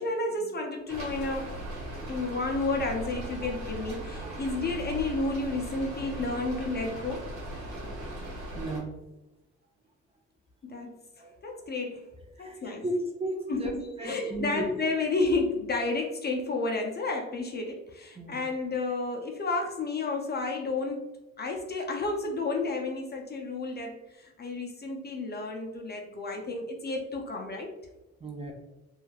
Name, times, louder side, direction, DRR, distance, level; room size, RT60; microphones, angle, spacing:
voice 1, 0.0-1.6 2.1-7.3 10.6-11.0 11.4-12.1 12.4-12.8 13.5-21.1 21.4-27.7, left 3 dB, 35° left, 2 dB, 0.4 m, -31 dB
Rain, 0.9-8.8, right 1 dB, 70° right, 1.1 m, -38 dB
voice 2, 8.5-8.9 11.2-11.3 12.4-13.7 14.0-14.7 18.1-18.4 28.2-28.5, right 1 dB, 20° right, 1 dB, 0.5 m, -34 dB
2.9 x 2.4 x 2.3 m, 0.99 s
cardioid pair, 90°, 30 cm